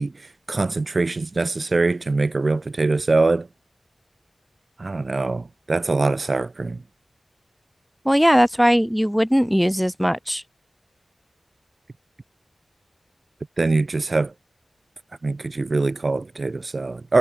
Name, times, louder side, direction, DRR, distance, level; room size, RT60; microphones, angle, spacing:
voice 1, 0.0-3.5 4.8-6.8 13.6-14.3 15.2-17.2, right 3 dB, 50° right, 0.8 m, -23 dB
voice 2, 8.0-10.4, equal, ahead, 2.4 m, -19 dB
wide cardioid pair, 70°, 0 cm